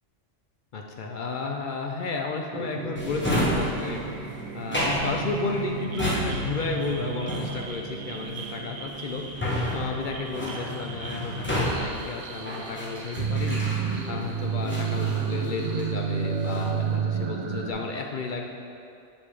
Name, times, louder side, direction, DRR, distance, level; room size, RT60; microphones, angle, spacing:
voice 1, 0.7-4.0 4.5-9.2 9.7-13.6 14.1-18.5, left 4 dB, 60° left, 1 dB, 0.5 m, -33 dB
sound 1, 2.5-17.7, right 6 dB, 60° right, 0.7 m, -32 dB
Drawer open or close, 3.0-14.2 14.7-15.9 16.3-16.8, equal, 10° left, 1.1 m, -31 dB
8.6 x 5.2 x 3.3 m, 2.6 s
omnidirectional pair, 1.2 m